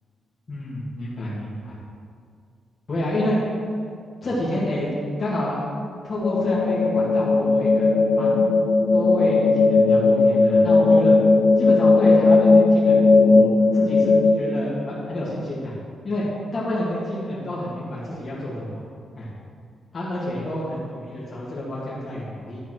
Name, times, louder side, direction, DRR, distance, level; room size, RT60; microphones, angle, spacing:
voice 1, 0.5-1.8 2.9-3.4 4.2-4.9 5.2-5.6 6.0-8.5 8.9-11.2 11.6-15.8 16.0-16.2 16.5-18.8 19.2-19.3 19.9-22.6, left 1 dB, 40° left, -8 dB, 2.2 m, -29 dB
sound 1, 6.2-14.3, left 3 dB, 60° left, 0.8 m, -17 dB
11.5 x 4.6 x 6.2 m, 2.2 s
cardioid pair, 105°, 0 cm